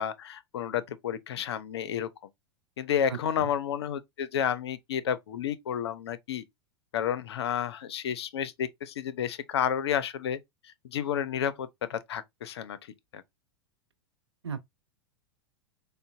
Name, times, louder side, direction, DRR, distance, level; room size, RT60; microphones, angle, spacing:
voice 1, 0.0-2.1 2.8-6.4 6.9-10.4 10.6-12.8 13.1-13.2, left 9 dB, 70° left, 0.5 m, -31 dB
voice 2, 3.1-3.5 14.4-14.7, right 7 dB, 85° right, 0.5 m, -37 dB
3.7 x 2.0 x 2.4 m
figure-of-eight pair, 95°, 14 cm